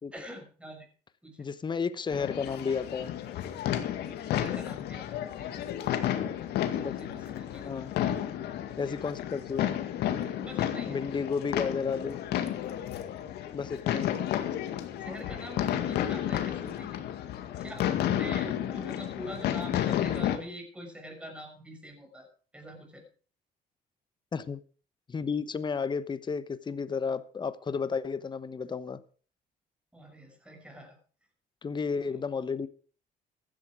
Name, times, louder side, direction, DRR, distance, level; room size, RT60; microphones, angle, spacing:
voice 1, 0.1-0.9 1.2-1.4 4.2-5.6 6.7-7.8 10.4-11.0 15.0-16.9 17.6-22.3 22.5-23.0 29.9-31.0 32.0-32.2, equal, 5° right, 4 dB, 6.1 m, -44 dB
voice 2, 1.4-3.1 6.7-6.9 7.6-7.9 8.8-9.7 10.9-12.2 13.5-14.2 24.3-24.6 25.1-29.0 31.6-32.7, left 5 dB, 25° left, 14 dB, 1.1 m, -32 dB
sound 1, 2.1-20.4, left 11 dB, 75° left, 2.0 m, -32 dB
15.5 x 11.5 x 5.0 m, 0.41 s
cardioid pair, 110°, 17 cm